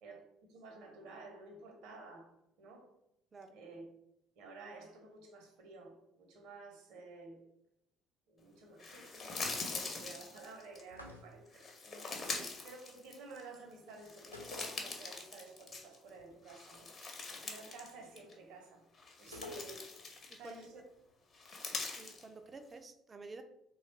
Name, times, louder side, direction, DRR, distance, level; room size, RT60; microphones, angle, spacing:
voice 1, 0.0-2.3 2.6-2.9 3.5-3.9 4.4-7.4 8.3-16.9 17.3-18.8 19.2-19.9 20.4-20.8, right 3 dB, 60° right, 1 dB, 0.9 m, -53 dB
sound 1, 8.8-10.8 11.5-13.5 13.9-16.1 16.5-17.9 18.2-18.3 18.9-20.6 21.3-22.2, left 3 dB, 35° left, 0.8 m, -43 dB
sound 2, 10.9-11.6 14.3-15.4 15.6-15.7 19.3-20.1, left 2 dB, 90° left, 0.3 m, -50 dB
voice 2, 19.3-19.7 20.3-20.6 22.0-23.4, right 3 dB, 30° right, 7 dB, 0.4 m, -51 dB
3.1 x 2.4 x 4.0 m, 0.81 s
figure-of-eight pair, 50°, 0 cm